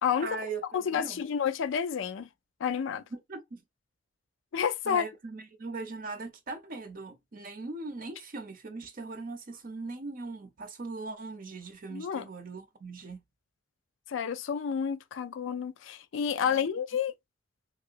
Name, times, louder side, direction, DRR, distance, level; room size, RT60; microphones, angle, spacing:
voice 1, 0.2-1.2 3.1-3.6 4.8-13.2 16.4-16.7, right 3 dB, 45° right, 0.6 m, -40 dB
voice 2, 0.7-2.3 2.6-3.0 4.5-5.1 11.9-12.3 14.1-17.1, left 7 dB, 85° left, 0.4 m, -30 dB
3.0 x 2.9 x 2.4 m
head